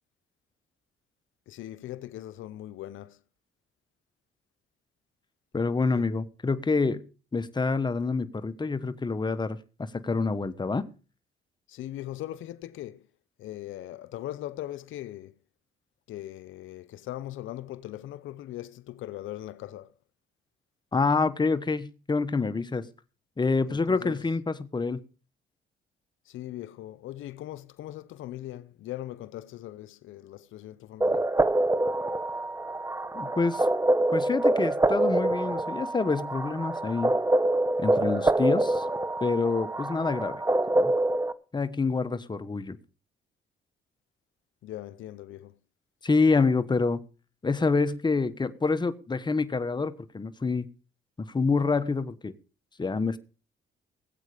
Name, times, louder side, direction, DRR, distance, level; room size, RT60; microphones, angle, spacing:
voice 1, 1.5-3.2 6.0-6.1 11.7-13.0 13.4-15.3 16.1-19.9 23.7-24.2 26.3-31.3 44.6-45.5, left 14 dB, 80° left, 0.7 m, -40 dB
voice 2, 5.5-7.0 7.3-10.8 20.9-22.8 23.4-25.0 33.1-33.7 34.1-37.1 37.8-38.8 39.2-40.4 40.7-40.9 41.5-42.8 46.0-47.0 47.4-50.7 51.2-52.3 52.8-53.2, left 4 dB, 20° left, 1.2 m, -27 dB
sound 1, 31.0-41.3, right 2 dB, 15° right, 1.0 m, -26 dB
19.0 x 8.2 x 5.0 m
cardioid pair, 90°, 20 cm